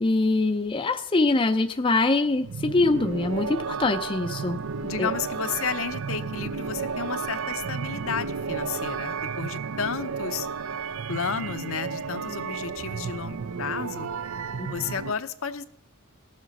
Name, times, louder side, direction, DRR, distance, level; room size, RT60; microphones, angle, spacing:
voice 1, 0.0-4.6 5.0-5.1 14.5-14.7, left 3 dB, 25° left, 7 dB, 0.5 m, -23 dB
sound 1, 2.4-15.1, right 5 dB, 65° right, 0.4 m, -32 dB
voice 2, 4.8-10.5 11.1-14.1 14.7-15.7, left 6 dB, 60° left, 10 dB, 0.7 m, -32 dB
18.5 x 7.5 x 5.3 m, 0.73 s
head